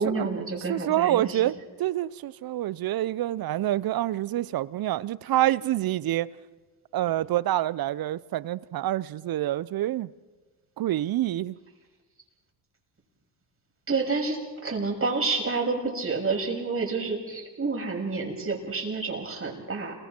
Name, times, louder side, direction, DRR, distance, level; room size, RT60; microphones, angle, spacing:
voice 1, 0.0-1.2 13.9-14.4 14.6-19.9, right 4 dB, 25° right, 7.0 m, -29 dB
voice 2, 0.7-6.3 6.9-10.1 10.8-11.6, right 14 dB, 45° right, 0.7 m, -27 dB
29.5 x 23.0 x 4.5 m
hypercardioid pair, 65°, 49 cm